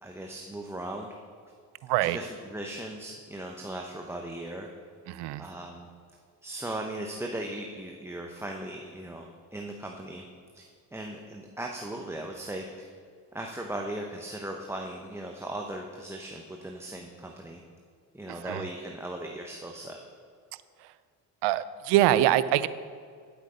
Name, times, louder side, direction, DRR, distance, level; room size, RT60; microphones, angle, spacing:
voice 1, 0.0-1.1 2.0-4.7 5.4-5.9 6.4-10.3 10.5-10.6 10.9-12.6 13.3-17.6 18.1-20.0, right 1 dB, 5° right, 1 dB, 0.9 m, -38 dB
voice 2, 5.1-5.4 18.4-18.6 21.4-22.7, right 13 dB, 75° right, 16 dB, 0.6 m, -24 dB
10.0 x 8.1 x 5.1 m, 2.1 s
supercardioid pair, 75°, 41 cm